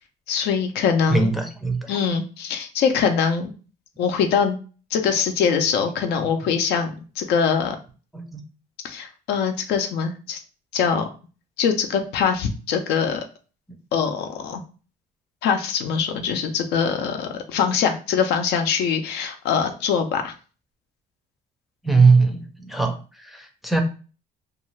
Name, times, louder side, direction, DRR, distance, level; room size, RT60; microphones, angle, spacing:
voice 1, 0.3-1.3 1.9-3.5 4.0-4.6 4.9-7.8 8.8-10.4 10.7-11.1 11.6-13.2 13.9-14.6 15.4-20.3, left 6 dB, 80° left, 6 dB, 0.5 m, -23 dB
voice 2, 1.1-1.9 8.1-8.4 21.8-23.8, right 4 dB, ahead, 3 dB, 0.5 m, -20 dB
2.5 x 2.3 x 3.1 m, 0.36 s
cardioid pair, 110°, 17 cm